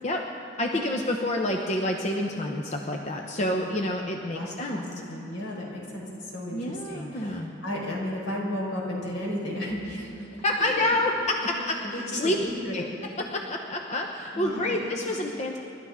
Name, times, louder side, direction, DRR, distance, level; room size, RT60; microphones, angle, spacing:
voice 1, 0.6-4.8 6.5-7.5 10.4-12.4 12.7-15.6, left 1 dB, 35° left, 1 dB, 0.8 m, -28 dB
voice 2, 3.3-3.8 4.3-6.0 6.3-10.3 10.6-10.9 11.9-12.8 14.3-14.8, left 1 dB, 70° left, -3 dB, 4.4 m, -34 dB
30.0 x 12.5 x 3.6 m, 2.8 s
head